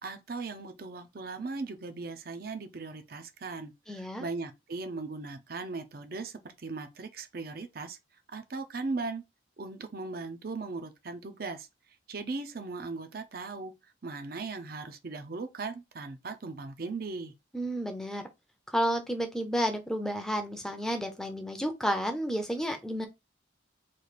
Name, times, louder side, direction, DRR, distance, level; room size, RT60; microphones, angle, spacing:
voice 1, 0.0-8.0 8.3-9.2 9.6-11.7 12.1-13.7 14.0-17.3, right 3 dB, 50° right, 0.5 m, -38 dB
voice 2, 3.9-4.2 17.5-18.2 18.7-23.1, equal, 5° left, 0.5 m, -31 dB
3.1 x 2.5 x 4.1 m
head